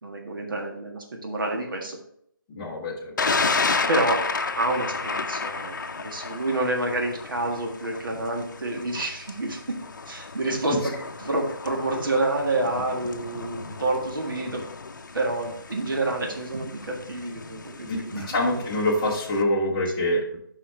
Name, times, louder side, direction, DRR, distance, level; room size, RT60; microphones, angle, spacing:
voice 1, 0.0-2.0 3.9-4.2 4.5-9.6 10.0-10.9 11.2-14.6 15.1-18.3, right 2 dB, 70° right, 1 dB, 1.6 m, -28 dB
voice 2, 2.5-3.1 10.7-10.9 17.9-20.4, left 1 dB, 15° left, -3 dB, 1.0 m, -25 dB
Thunder, 3.2-19.4, left 4 dB, 60° left, 0.7 m, -32 dB
7.5 x 5.6 x 3.3 m, 0.70 s
figure-of-eight pair, 165°, 12 cm